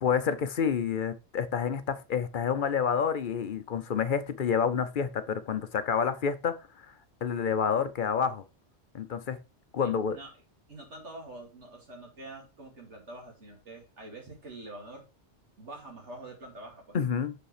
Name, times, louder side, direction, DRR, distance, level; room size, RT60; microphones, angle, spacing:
voice 1, 0.0-6.9 7.2-8.4 8.9-9.4 9.7-10.2 16.9-17.3, left 7 dB, 50° left, 0.8 m, -28 dB
voice 2, 9.8-10.3 10.7-15.0 15.6-17.0, right 2 dB, 90° right, 2.7 m, -46 dB
6.4 x 5.2 x 4.9 m
omnidirectional pair, 1.2 m